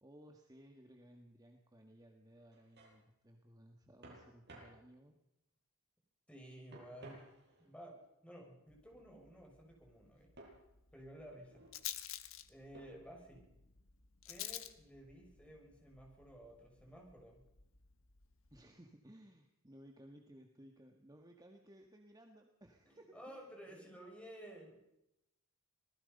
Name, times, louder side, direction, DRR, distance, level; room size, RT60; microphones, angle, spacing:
voice 1, 0.0-5.2 18.5-23.9, right 1 dB, 15° right, 3 dB, 1.8 m, -60 dB
sound 1, 2.4-3.0 4.0-4.8 6.7-7.7 10.4-10.6 11.3-11.8 12.7-13.2, right 1 dB, 50° right, 7.9 m, -57 dB
voice 2, 6.3-7.3 7.6-10.3 10.9-11.6 12.5-13.5 14.3-17.4 22.8-24.8, right 1 dB, 5° left, 0 dB, 6.5 m, -54 dB
Rattle, 8.7-18.6, left 12 dB, 65° left, 1.5 m, -51 dB
26.5 x 19.5 x 5.5 m, 0.88 s
head